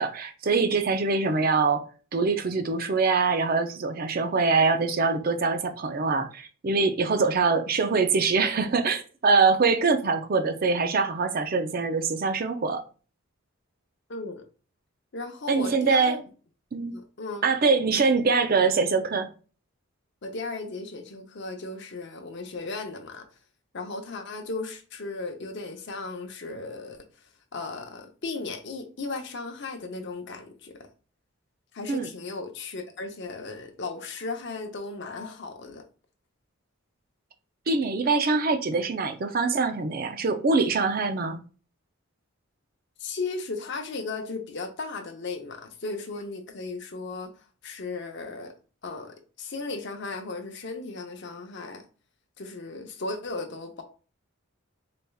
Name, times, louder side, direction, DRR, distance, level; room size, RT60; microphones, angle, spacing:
voice 1, 0.0-1.8 2.1-12.8 15.5-16.2 16.7-17.0 17.4-19.3 31.9-32.1 37.7-41.4, right 4 dB, 40° right, 0.4 m, -24 dB
voice 2, 14.1-14.4 15.1-16.2 16.9-17.5 20.2-23.2 23.7-27.0 27.5-30.7 31.7-35.8 43.0-47.3 47.6-48.5 48.8-51.8 52.4-53.8, left 3 dB, 55° left, 0.7 m, -36 dB
4.2 x 3.4 x 2.3 m
head